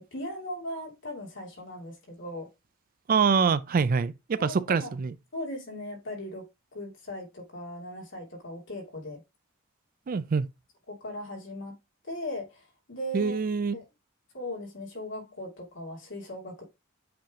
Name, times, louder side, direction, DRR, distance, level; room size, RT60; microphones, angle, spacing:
voice 1, 0.0-2.5 4.4-4.9 5.3-6.5 6.7-9.2 10.9-11.7 12.0-12.6 12.9-13.4 13.7-13.8 14.3-16.6, left 1 dB, 60° left, 2.9 m, -38 dB
voice 2, 3.1-5.1 10.1-10.5 13.1-13.8, right 5 dB, 45° right, 0.4 m, -25 dB
8.0 x 3.4 x 3.7 m
head